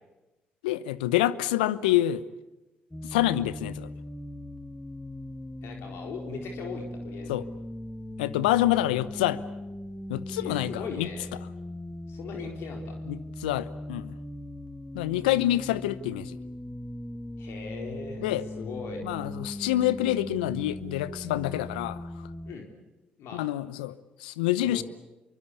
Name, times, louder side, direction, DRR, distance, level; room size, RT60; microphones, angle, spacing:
voice 1, 0.6-2.2 3.0-3.9 7.3-7.4 8.2-9.4 10.1-11.1 13.1-14.2 14.9-16.4 18.2-18.5 19.0-22.1 23.3-24.8, left 14 dB, 80° left, 17 dB, 0.9 m, -27 dB
sound 1, 2.9-22.5, left 1 dB, 10° left, 1.6 m, -39 dB
voice 2, 5.6-7.4 10.4-11.3 12.1-13.0 17.4-18.3 18.6-19.0 22.5-22.7 23.2-23.5 24.6-24.8, left 5 dB, 65° left, 3 dB, 4.1 m, -39 dB
26.5 x 23.5 x 8.4 m, 1.0 s
hypercardioid pair, 50°, 5 cm